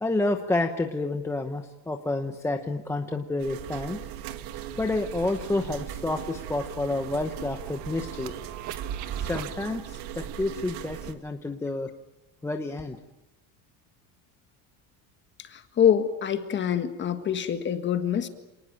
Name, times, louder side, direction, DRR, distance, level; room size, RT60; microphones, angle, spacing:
voice 1, 0.0-4.0 4.8-8.3 9.1-11.9 12.4-13.0, left 2 dB, 5° left, 5 dB, 0.8 m, -29 dB
sound 1, 3.4-11.1, right 11 dB, 65° right, 2.0 m, -39 dB
sound 2, 4.6-9.6, right 9 dB, 45° right, 1.6 m, -40 dB
voice 2, 15.4-18.3, left 9 dB, 25° left, 8 dB, 1.7 m, -25 dB
27.5 x 19.5 x 9.0 m, 1.0 s
cardioid pair, 165°, 43 cm